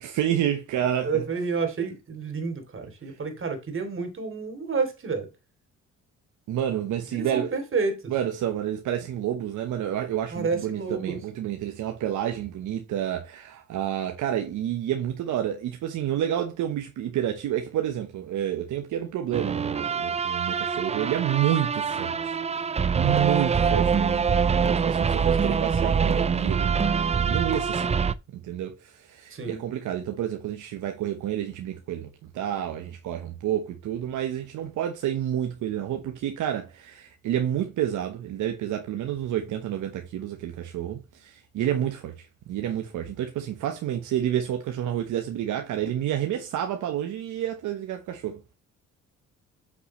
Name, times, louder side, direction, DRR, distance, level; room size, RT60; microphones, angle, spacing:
voice 1, 0.0-1.2 6.5-7.5 8.1-27.0 27.3-28.1 28.3-48.4, right 11 dB, 80° right, 1.1 m, -29 dB
voice 2, 1.0-5.3 7.1-8.1 10.3-11.2 29.3-29.6, right 4 dB, 45° right, 2.9 m, -30 dB
sound 1, 19.3-28.1, right 6 dB, 20° right, 0.4 m, -24 dB
8.3 x 6.0 x 3.1 m
cardioid pair, 90°, 30 cm